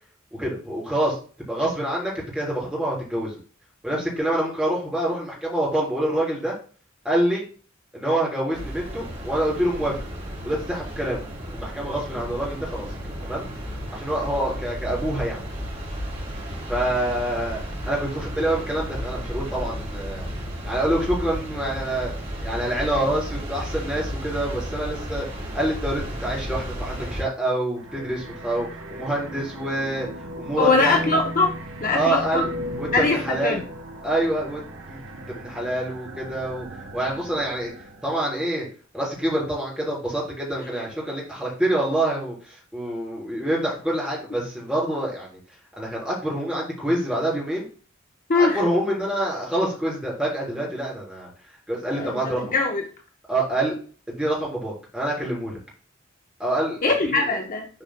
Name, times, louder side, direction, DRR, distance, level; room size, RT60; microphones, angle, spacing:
voice 1, 0.4-3.4 3.8-6.5 7.0-7.4 7.9-10.0 10.4-11.2 11.5-12.9 13.2-13.5 13.9-15.4 16.7-17.6 17.9-20.3 20.6-22.1 22.4-25.2 25.5-30.1 30.4-31.2 31.9-32.5 32.8-33.6 34.0-35.0 35.4-36.7 36.9-37.7 38.0-38.7 38.9-45.3 45.8-47.7 48.3-51.3 51.7-52.5 53.3-53.7 54.1-55.6 56.4-57.2, right 1 dB, 5° right, -4 dB, 3.5 m, -26 dB
sound 1, 8.5-27.2, equal, 35° right, 3.6 m, -33 dB
sound 2, 27.7-38.3, equal, 70° right, 0.9 m, -37 dB
voice 2, 30.6-32.4 32.9-33.6 48.3-48.6 51.9-52.8 56.8-57.7, left 3 dB, 40° left, 2 dB, 0.8 m, -22 dB
11.5 x 4.9 x 2.2 m, 0.39 s
head